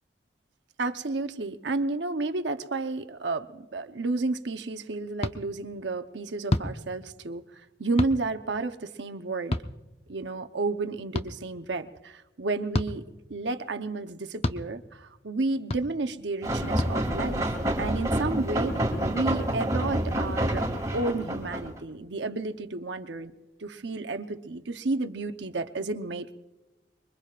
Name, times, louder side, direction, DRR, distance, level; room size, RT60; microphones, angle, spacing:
voice 1, 0.8-9.6 10.1-13.0 13.3-17.5 17.8-20.6 20.9-23.3 23.6-26.3, right 3 dB, 80° right, 7 dB, 0.9 m, -31 dB
sound 1, 5.2-5.4 6.5-6.7 8.0-8.2 9.5-9.7 11.1-11.3 12.7-12.9 14.4-14.6 15.7-15.8 16.8-16.9, left 1 dB, 35° left, 0.7 m, -27 dB
sound 2, 16.4-21.8, right 1 dB, 20° right, 2.4 m, -28 dB
25.0 x 23.0 x 2.5 m, 1.1 s
head